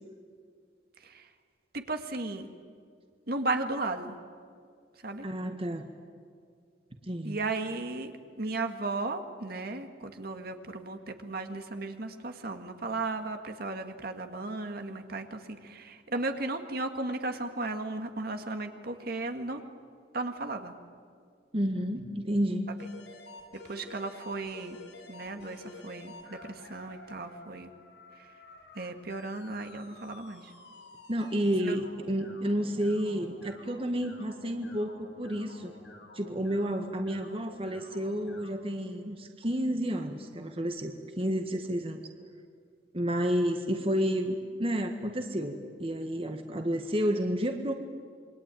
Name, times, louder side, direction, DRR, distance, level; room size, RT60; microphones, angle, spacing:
voice 1, 1.0-1.3 1.7-2.5 3.3-4.2 5.0-5.3 7.2-19.6 20.1-20.8 23.7-24.8 25.1-27.7 28.2-28.3 28.8-30.5 31.6-31.8, right 2 dB, 55° right, 6 dB, 2.0 m, -35 dB
voice 2, 5.2-5.9 7.0-7.4 21.5-22.7 31.1-35.7 36.1-42.0 42.9-47.7, equal, 30° right, 5 dB, 1.7 m, -30 dB
sound 1, 22.8-38.5, left 2 dB, 85° left, 7.4 m, -51 dB
27.5 x 23.5 x 9.2 m, 2.2 s
head